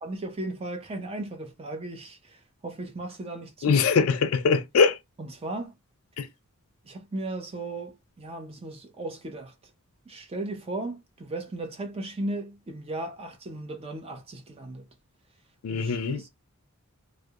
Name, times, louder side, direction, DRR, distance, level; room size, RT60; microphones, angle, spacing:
voice 1, 0.0-3.8 5.2-5.7 6.9-9.5 10.1-14.9 15.7-16.3, right 2 dB, 25° right, 0.4 m, -36 dB
voice 2, 3.6-5.0 6.2-6.3 15.6-16.2, left 5 dB, 70° left, 0.4 m, -22 dB
2.3 x 2.0 x 2.7 m
head